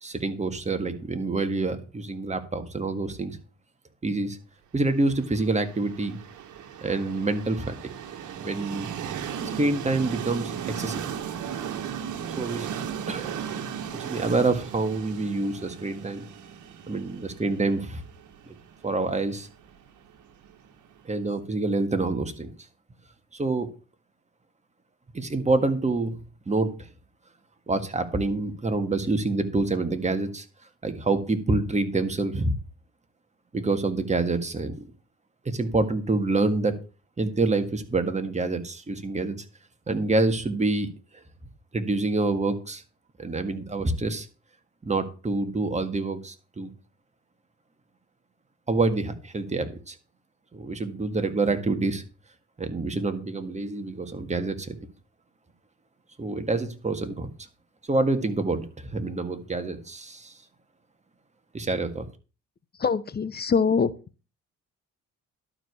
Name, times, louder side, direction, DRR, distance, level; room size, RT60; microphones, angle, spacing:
voice 1, 0.0-3.4 4.0-4.4 4.7-6.2 6.8-7.9 8.4-8.9 9.6-11.1 12.4-12.7 13.1-13.4 13.9-16.2 16.9-18.0 18.5-18.6 18.8-19.5 21.0-22.5 23.3-23.7 25.1-26.2 26.4-26.9 27.7-30.4 30.8-32.6 33.5-34.9 35.4-36.8 37.2-39.4 39.9-40.9 41.7-42.8 43.2-44.3 44.8-46.7 48.7-49.9 50.5-52.0 52.6-54.7 56.2-57.3 57.9-60.3 61.5-62.0, right 3 dB, 25° right, 7 dB, 1.8 m, -27 dB
Train, 5.2-21.0, right 8 dB, 75° right, 1.5 m, -36 dB
voice 2, 62.8-63.9, left 5 dB, 30° left, 16 dB, 0.7 m, -23 dB
12.0 x 4.9 x 6.9 m, 0.34 s
cardioid pair, 90°, 30 cm